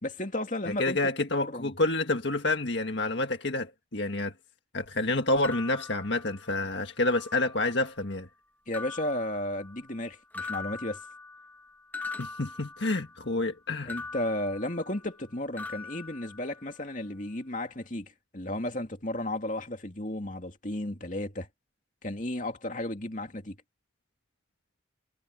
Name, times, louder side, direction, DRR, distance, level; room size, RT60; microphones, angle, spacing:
voice 1, 0.0-1.7 8.7-11.0 13.9-21.5 22.0-23.6, left 1 dB, 40° left, 2.7 m, -34 dB
voice 2, 0.7-4.3 4.7-8.3 12.2-13.9, left 2 dB, 70° left, 1.7 m, -28 dB
sound 1, 5.4-6.7 7.1-7.9 8.7-10.0 10.3-13.3 13.9-15.3 15.6-16.9, left 4 dB, 10° left, 1.7 m, -42 dB
head